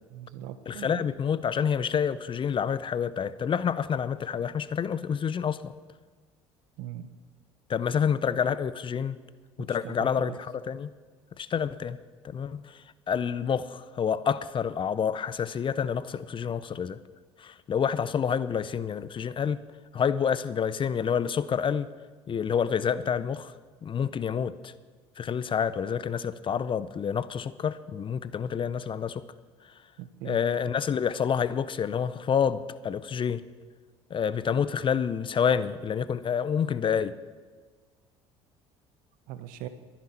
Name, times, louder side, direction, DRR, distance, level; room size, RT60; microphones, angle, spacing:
voice 1, 0.1-1.0 6.8-7.1 9.7-10.4 30.0-30.4 39.3-39.7, right 12 dB, 65° right, 11 dB, 1.0 m, -40 dB
voice 2, 0.7-5.7 7.7-9.2 9.6-10.9 11.4-12.0 12.2-12.8 13.1-17.0 17.4-19.6 19.9-21.9 22.3-23.5 23.8-24.7 25.2-29.2 30.2-33.4 34.1-37.1, left 7 dB, 35° left, 16 dB, 0.7 m, -28 dB
22.5 x 10.5 x 4.4 m, 1.4 s
hypercardioid pair, 65°, 15 cm